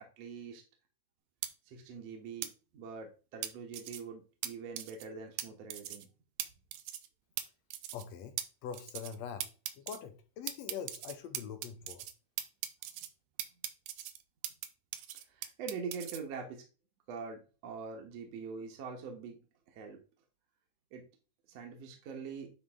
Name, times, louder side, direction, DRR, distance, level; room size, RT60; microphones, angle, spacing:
voice 1, 0.2-0.6 1.7-2.5 2.7-6.1 15.3-16.6 17.1-19.4 19.7-20.0 20.9-21.0 21.5-22.5, right 5 dB, 60° right, 2.1 m, -43 dB
sound 1, 1.4-1.5 2.4-2.5 3.4-4.0 4.4-4.5 4.8-5.0 5.4-5.5 5.7-6.0 6.4-6.5 6.7-7.1 7.4-7.5 7.7-8.0 8.4-8.5 8.7-9.2 9.4-10.0 10.5-12.1 12.4-13.1 13.4-14.7 14.9-16.2, right 12 dB, 85° right, 2.3 m, -39 dB
voice 2, 7.9-8.4 8.6-9.5 9.8-12.1, left 7 dB, 70° left, 1.8 m, -43 dB
9.7 x 3.6 x 3.6 m
omnidirectional pair, 3.7 m